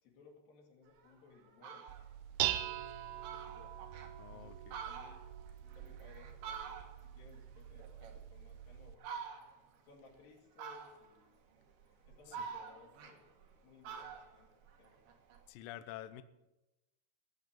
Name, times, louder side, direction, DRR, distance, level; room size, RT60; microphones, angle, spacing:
voice 1, 0.0-1.9 2.5-3.8 4.3-5.2 5.7-9.2 9.8-11.4 12.0-13.3 13.6-14.5 14.8-15.0, left 4 dB, 60° left, 0 dB, 4.1 m, -61 dB
Fowl, 1.0-1.1 1.5-2.1 2.6-2.7 2.9-3.0 3.2-4.1 4.6-7.2 7.5-8.6 9.0-9.7 10.6-11.2 11.8-13.5 13.8-15.4, right 6 dB, 70° right, 3.2 m, -47 dB
Dishes pots and pans, 1.9-9.0, right 13 dB, 90° right, 3.0 m, -42 dB
voice 2, 4.2-4.9 12.4-12.5 15.5-16.2, left 12 dB, 80° left, 12 dB, 2.0 m, -48 dB
15.5 x 8.0 x 9.0 m, 0.99 s
omnidirectional pair, 5.0 m